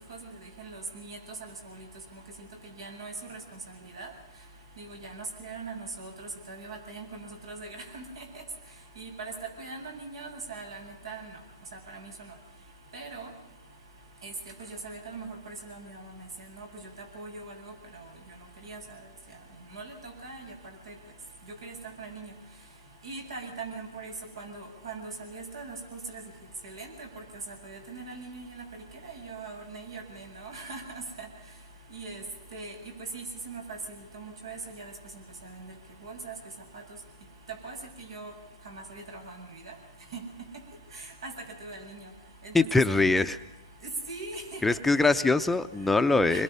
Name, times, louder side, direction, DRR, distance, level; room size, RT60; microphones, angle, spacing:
voice 1, 0.6-1.9 2.8-3.4 4.0-4.1 4.8-8.2 9.0-11.3 11.9-12.1 12.9-13.3 14.2-14.3 14.6-16.2 16.5-16.7 17.1-17.7 18.6-18.8 19.7-20.5 20.9-21.0 21.6-22.3 23.0-26.2 26.6-28.6 29.0-30.8 31.2-31.3 31.9-32.2 32.5-32.8 33.1-33.8 34.1-34.9 36.0-36.3 37.6-37.8 38.1-38.3 38.7-39.4 39.7-39.8 40.1-40.2 41.2-41.3 41.6-42.0 42.4-43.1 43.8-44.6 46.0-46.4, right 3 dB, 85° right, 2 dB, 7.2 m, -41 dB
voice 2, 42.5-43.4 44.6-46.4, left 3 dB, 5° left, 8 dB, 0.7 m, -23 dB
26.0 x 22.0 x 5.6 m, 0.97 s
hypercardioid pair, 135°, 2 cm